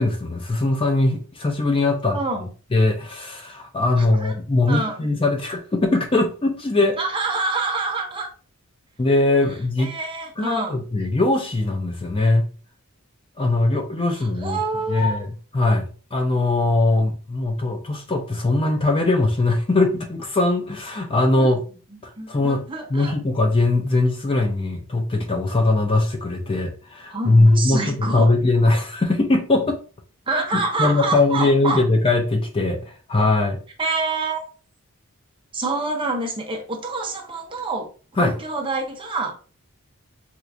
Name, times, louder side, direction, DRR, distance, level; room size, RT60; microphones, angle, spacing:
voice 1, 0.0-2.5 2.7-7.0 9.0-9.9 10.4-12.4 13.4-14.6 14.9-15.3 15.5-21.6 22.0-22.6 22.9-29.8 30.5-33.6 38.2-38.3, left 2 dB, 25° left, 0.4 m, -21 dB
voice 2, 2.1-2.5 4.0-4.3 4.7-5.0 7.0-8.3 9.8-10.8 14.1-15.2 21.4-21.6 22.2-23.1 27.1-28.3 30.3-31.8 33.8-34.4 35.5-37.9 38.2-39.4, right 3 dB, 25° right, 0.7 m, -27 dB
4.3 x 2.5 x 2.5 m
head